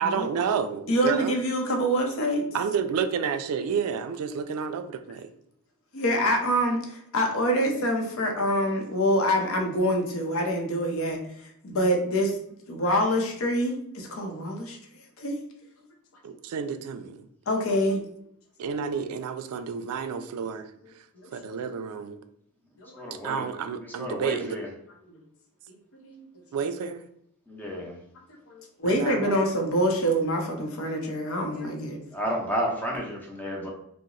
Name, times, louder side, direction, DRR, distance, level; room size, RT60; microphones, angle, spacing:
voice 1, 0.0-1.4 2.5-5.3 16.2-17.2 18.6-20.7 21.3-22.2 23.2-24.6 26.5-27.0 28.8-29.5, right 6 dB, 80° right, 9 dB, 0.3 m, -30 dB
voice 2, 0.9-2.5 5.9-11.2 11.6-12.4 12.7-14.8 15.2-15.4 17.5-18.0 21.2-21.3 22.9-23.0 25.9-26.3 28.5-32.0, equal, 65° left, 2 dB, 0.6 m, -26 dB
voice 3, 23.0-23.4 23.8-24.7 27.5-27.9 32.1-33.7, equal, 10° left, -1 dB, 0.5 m, -31 dB
2.9 x 2.0 x 3.7 m, 0.72 s
head